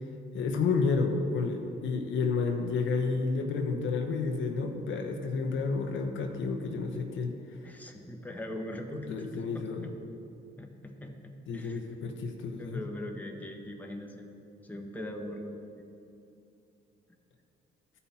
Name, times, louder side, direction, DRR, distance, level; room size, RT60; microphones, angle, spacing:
voice 1, 0.3-7.3 8.9-9.9 11.5-12.8, left 4 dB, 75° left, 4 dB, 0.9 m, -30 dB
voice 2, 7.6-9.9 10.6-11.8 12.6-14.3 14.7-15.6, left 1 dB, 10° left, 2 dB, 1.1 m, -41 dB
14.0 x 5.6 x 4.2 m, 2.8 s
cardioid pair, 90°, 20 cm